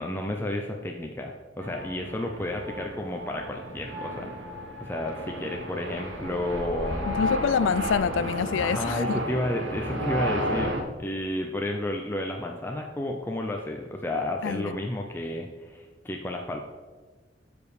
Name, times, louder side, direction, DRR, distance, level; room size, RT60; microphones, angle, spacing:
voice 1, 0.0-4.3 4.8-7.1 8.6-16.6, left 1 dB, 10° left, 0.5 m, -31 dB
sound 1, 1.6-10.8, equal, 65° right, 1.3 m, -32 dB
voice 2, 7.1-9.2 14.4-14.8, left 6 dB, 80° left, 0.4 m, -26 dB
12.0 x 5.1 x 4.9 m
head